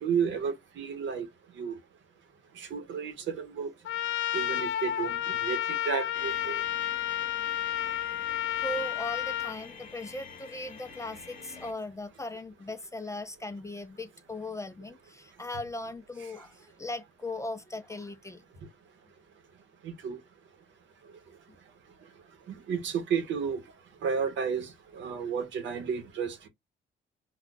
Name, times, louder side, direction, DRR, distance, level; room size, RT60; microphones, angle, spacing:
voice 1, 0.0-1.3 1.6-1.8 2.6-3.7 4.3-6.6 19.8-20.2 22.5-23.6 24.0-26.5, right 6 dB, 70° right, 0.8 m, -32 dB
Trumpet, 3.9-9.6, left 11 dB, 75° left, 0.4 m, -31 dB
sound 1, 6.1-11.7, left 6 dB, 45° left, 1.0 m, -48 dB
voice 2, 8.6-18.4, left 2 dB, 15° left, 0.5 m, -38 dB
2.3 x 2.3 x 3.7 m
cardioid pair, 90°, 20 cm